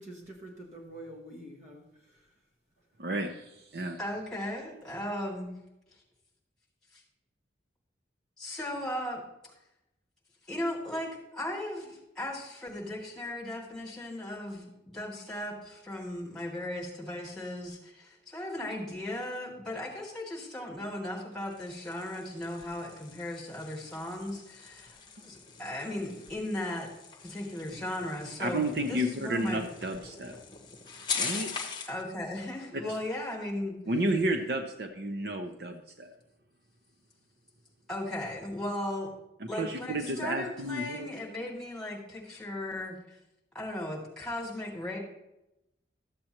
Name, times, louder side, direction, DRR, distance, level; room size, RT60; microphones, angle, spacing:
voice 1, 0.0-2.2, right 1 dB, 40° right, 0 dB, 1.3 m, -46 dB
voice 2, 3.0-4.0 28.4-30.3 31.1-31.5 33.9-36.1 39.4-41.1, right 1 dB, 60° right, 4 dB, 0.7 m, -31 dB
voice 3, 4.0-5.5 8.4-9.2 10.5-26.9 27.2-29.6 31.9-33.7 37.9-39.1 39.5-43.2 43.5-45.0, left 1 dB, 5° left, -5 dB, 2.3 m, -37 dB
sound 1, 21.3-32.0, left 5 dB, 25° left, 1.0 m, -41 dB
13.0 x 7.6 x 3.0 m, 0.90 s
head